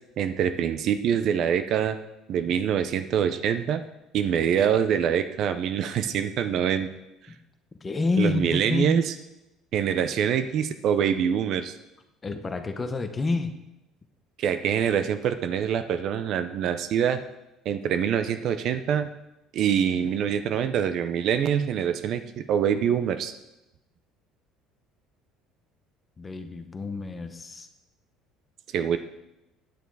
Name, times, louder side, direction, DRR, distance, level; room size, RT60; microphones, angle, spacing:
voice 1, 0.2-2.0 2.3-3.8 4.1-6.9 8.2-9.1 9.7-11.7 14.4-17.2 17.7-19.1 19.5-23.3 28.7-29.0, right 8 dB, 40° right, 10 dB, 0.5 m, -25 dB
voice 2, 7.8-9.0 12.2-13.5 26.2-27.7, left 3 dB, 15° left, 8 dB, 0.7 m, -28 dB
9.2 x 9.2 x 4.7 m, 0.93 s
cardioid pair, 175°, 0 cm